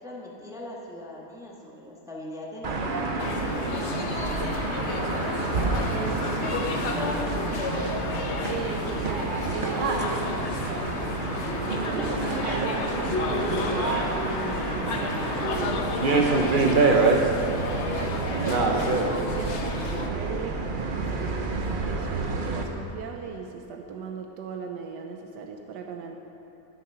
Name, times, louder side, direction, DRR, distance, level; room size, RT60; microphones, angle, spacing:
voice 1, 0.0-4.4 6.1-7.1, left 1 dB, ahead, -3 dB, 1.1 m, -41 dB
sound 1, 2.6-22.6, right 3 dB, 45° right, 0.6 m, -27 dB
sound 2, 3.2-20.1, left 4 dB, 55° left, 0.9 m, -32 dB
voice 2, 5.9-6.4 8.5-10.3 11.9-16.0 17.9-26.2, right 5 dB, 85° right, 3 dB, 1.3 m, -37 dB
11.5 x 7.7 x 5.6 m, 2.9 s
omnidirectional pair, 1.8 m